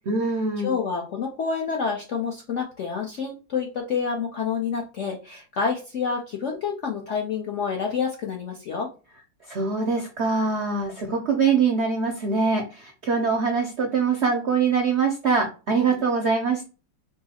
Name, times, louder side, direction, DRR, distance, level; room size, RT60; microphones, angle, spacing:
voice 1, 0.1-0.8 9.5-16.6, right 5 dB, 65° right, 3 dB, 0.6 m, -23 dB
voice 2, 0.6-8.9, left 5 dB, 65° left, 0 dB, 0.7 m, -28 dB
4.6 x 2.0 x 4.1 m, 0.33 s
omnidirectional pair, 1.9 m